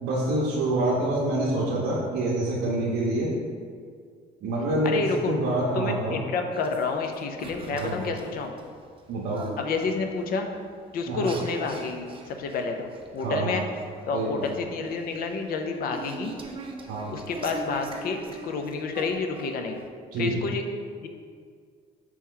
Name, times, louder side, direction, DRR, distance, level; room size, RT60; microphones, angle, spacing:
voice 1, 0.0-3.3 4.4-6.2 7.7-8.1 9.1-9.4 11.1-11.3 13.2-13.6 14.1-14.4 16.9-17.1 20.1-20.5, right 1 dB, 75° right, -4 dB, 0.7 m, -27 dB
voice 2, 4.8-5.3 5.7-8.5 9.6-10.5 10.9-13.6 14.1-16.3 17.1-19.8 20.2-20.6 21.0-21.1, left 4 dB, 60° left, 4 dB, 0.5 m, -29 dB
sound 1, 6.5-19.9, right 3 dB, 30° right, 0.4 m, -42 dB
4.2 x 3.0 x 3.7 m, 2.1 s
cardioid pair, 110°, 17 cm